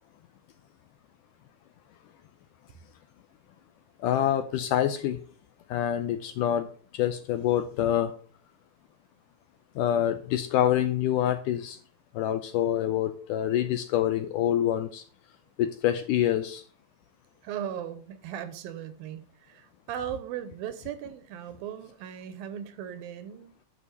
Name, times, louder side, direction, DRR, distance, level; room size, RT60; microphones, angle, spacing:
voice 1, 4.0-5.2 5.7-8.1 9.8-11.8 12.1-15.0 15.6-16.6, left 11 dB, 75° left, 2.0 m, -26 dB
voice 2, 17.4-23.7, right 9 dB, 80° right, 2.7 m, -38 dB
11.0 x 5.3 x 6.7 m
omnidirectional pair, 4.2 m